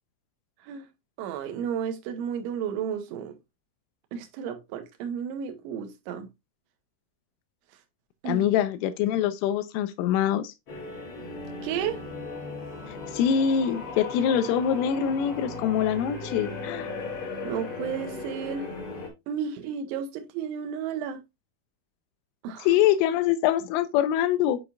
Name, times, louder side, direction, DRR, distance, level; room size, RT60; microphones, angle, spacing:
voice 1, 1.2-3.3 4.1-6.3 8.2-8.4 11.6-12.0 17.4-18.7 19.3-21.2 22.4-22.7, right 8 dB, 80° right, 3.2 m, -32 dB
voice 2, 8.3-10.5 13.1-16.9 22.6-24.6, left 9 dB, 85° left, 3.1 m, -24 dB
sound 1, 10.7-19.1, left 3 dB, 55° left, 1.5 m, -37 dB
8.2 x 4.9 x 2.5 m
omnidirectional pair, 5.7 m